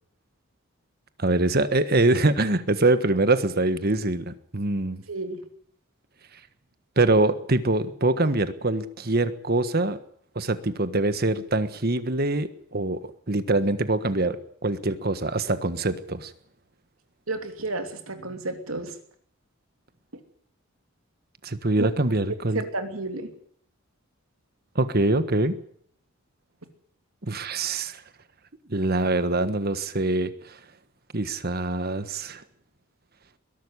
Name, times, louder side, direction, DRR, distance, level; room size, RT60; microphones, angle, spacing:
voice 1, 1.2-5.0 7.0-10.0 10.3-13.0 13.3-14.4 14.6-16.3 21.4-22.6 24.7-25.5 27.2-28.0 28.7-30.6 31.1-32.4, right 2 dB, 45° right, 12 dB, 1.5 m, -24 dB
voice 2, 5.1-5.4 17.3-18.9 21.8-21.9 22.5-23.3, right 2 dB, 85° right, 6 dB, 3.0 m, -31 dB
21.5 x 12.0 x 10.0 m, 0.63 s
head